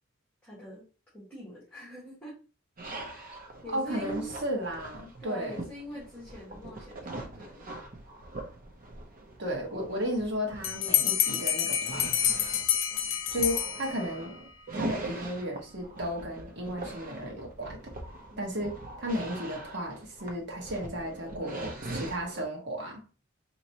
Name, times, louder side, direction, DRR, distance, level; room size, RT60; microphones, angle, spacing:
voice 1, 0.4-0.9 1.1-2.4 3.0-4.3 5.2-7.7 18.3-18.5, right 1 dB, 5° left, 1.5 m, -43 dB
sound 1, 2.8-22.4, right 2 dB, 45° right, 0.7 m, -42 dB
voice 2, 3.7-5.6 9.4-12.1 13.3-14.3 14.7-17.9 18.4-23.0, equal, 60° right, 1.2 m, -34 dB
Bell, 10.6-14.3, left 10 dB, 80° left, 0.7 m, -28 dB
4.2 x 2.9 x 2.8 m
head